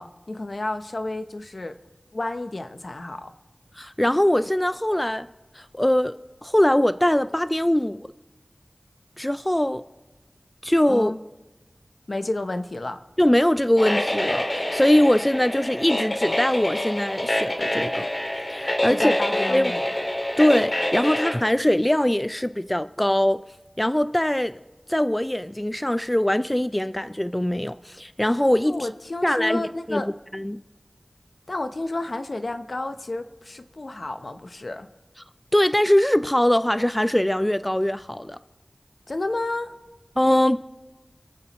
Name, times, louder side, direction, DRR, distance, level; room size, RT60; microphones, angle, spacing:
voice 1, 0.0-1.8 2.1-3.3 10.9-11.2 12.1-13.0 18.9-19.9 28.7-30.1 31.5-34.9 39.1-39.7, left 2 dB, 65° left, 0.8 m, -31 dB
voice 2, 3.8-5.3 5.5-8.1 9.2-9.8 10.6-11.1 13.2-18.1 18.5-19.2 19.5-19.7 20.4-23.4 23.8-24.6 24.9-28.9 29.2-30.0 30.3-30.6 35.5-38.4 40.2-40.6, left 1 dB, 15° left, 0.4 m, -22 dB
sound 1, 13.8-21.3, left 1 dB, 45° left, 2.2 m, -26 dB
26.5 x 9.2 x 3.1 m
wide cardioid pair, 45°, 0 cm